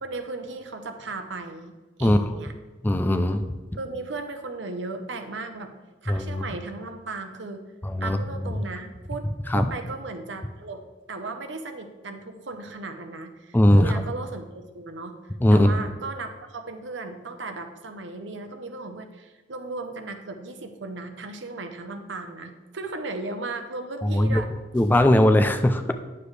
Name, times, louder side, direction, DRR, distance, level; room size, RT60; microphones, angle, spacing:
voice 1, 0.0-2.5 3.8-5.7 6.0-7.6 8.0-9.3 9.5-24.5, right 3 dB, 75° right, 6 dB, 0.8 m, -36 dB
voice 2, 2.8-3.4 6.1-6.4 7.8-8.2 9.5-9.7 13.5-14.0 15.4-15.8 24.0-24.4 24.7-25.9, left 1 dB, 10° left, 8 dB, 0.3 m, -19 dB
9.6 x 6.8 x 3.3 m, 1.2 s
head